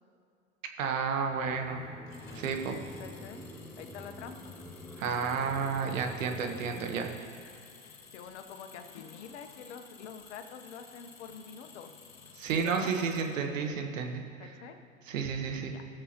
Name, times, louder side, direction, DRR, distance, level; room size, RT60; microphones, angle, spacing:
voice 1, 0.8-1.8 2.3-2.8 5.0-7.1 12.4-14.5 15.1-15.7, right 6 dB, 75° right, 4 dB, 1.3 m, -31 dB
sound 1, 1.3-7.2, left 1 dB, ahead, 0.4 m, -47 dB
Engine, 2.1-13.7, left 5 dB, 85° left, 1.9 m, -53 dB
voice 2, 3.0-3.4 3.8-4.5 8.1-11.9 12.5-13.9 14.4-14.8 15.7-15.8, left 7 dB, 60° left, 7 dB, 1.0 m, -46 dB
17.5 x 6.9 x 3.0 m, 2.4 s
hypercardioid pair, 105°, 39 cm